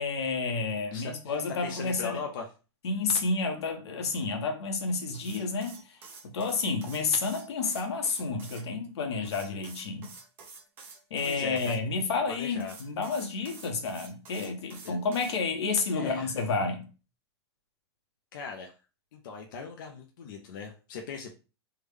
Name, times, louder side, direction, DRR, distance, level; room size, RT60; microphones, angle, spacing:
voice 1, 0.0-2.2 2.8-10.1 11.1-16.9, left 4 dB, 75° left, 0.9 m, -30 dB
voice 2, 0.9-1.3 1.6-2.5 11.2-11.8 12.3-12.7 14.8-15.0 15.9-16.3 18.3-18.7 19.1-21.3, left 5 dB, 50° left, 0.5 m, -39 dB
sound 1, 5.1-8.6 9.2-11.8 12.6-15.4, right 4 dB, 15° right, 0.5 m, -48 dB
3.5 x 2.1 x 3.2 m
supercardioid pair, 175°, 14 cm